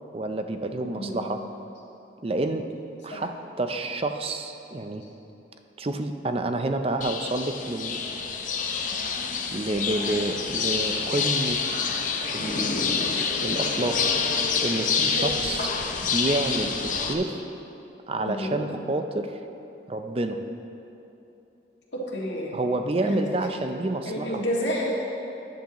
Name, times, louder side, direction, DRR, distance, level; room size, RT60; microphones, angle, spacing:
voice 1, 0.1-1.4 2.2-2.7 3.0-5.0 5.8-8.0 9.5-11.6 11.9-12.1 12.3-14.0 14.6-15.7 16.0-17.4 18.1-19.3 19.9-20.4 22.5-24.4, right 2 dB, 30° right, 6 dB, 0.5 m, -29 dB
voice 2, 0.9-1.2 3.1-3.2 15.2-15.3 18.2-18.6 21.9-22.5 23.0-23.3 24.0-25.0, equal, 75° left, -4 dB, 1.9 m, -30 dB
sound 1, 7.0-17.1, left 5 dB, 45° left, 0.6 m, -27 dB
12.5 x 10.5 x 3.0 m, 3.0 s
head